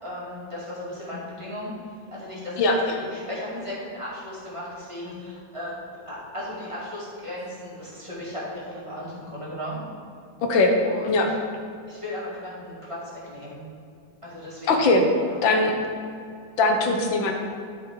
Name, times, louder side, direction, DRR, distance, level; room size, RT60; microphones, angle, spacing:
voice 1, 0.0-1.7 2.1-5.7 6.1-9.8 10.8-11.2 11.9-13.6 14.2-15.0 15.2-15.4, left 1 dB, 15° right, -8 dB, 2.3 m, -36 dB
voice 2, 2.6-2.9 10.5-10.7 11.1-11.3 14.7-15.0 15.4-15.7 16.6-17.3, left 2 dB, 80° left, 3 dB, 1.7 m, -20 dB
11.5 x 5.1 x 4.7 m, 2.4 s
omnidirectional pair, 2.1 m